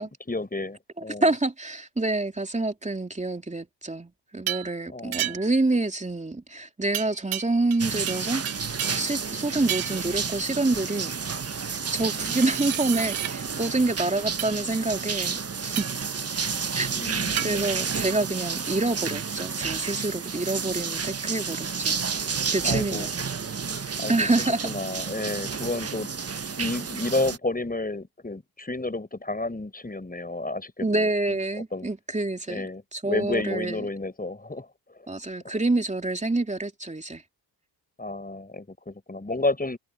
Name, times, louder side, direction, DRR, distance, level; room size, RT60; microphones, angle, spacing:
voice 1, 0.3-1.3 4.9-5.4 12.0-12.3 16.9-17.6 22.6-23.1 24.0-24.3 24.6-26.1 26.6-31.4 31.7-31.9 32.5-34.7 35.0-35.1 35.4-35.6 38.0-39.8, left 2 dB, 15° left, 7.5 m, -31 dB
voice 2, 1.2-8.7 8.9-11.1 11.9-15.9 16.7-16.9 17.4-22.0 22.2-23.2 24.1-24.7 30.8-32.7 32.9-33.9 35.1-37.2, right 2 dB, 15° right, 2.9 m, -27 dB
sound 1, 4.5-4.7 5.1-5.6 6.9-7.8 8.1-9.1 9.7-10.1 11.8-13.3 14.4-14.6 15.7-16.1 17.4-17.5, right 13 dB, 70° right, 2.2 m, -32 dB
sound 2, 7.8-27.4, right 5 dB, 30° right, 1.4 m, -31 dB
supercardioid pair, 55°, 49 cm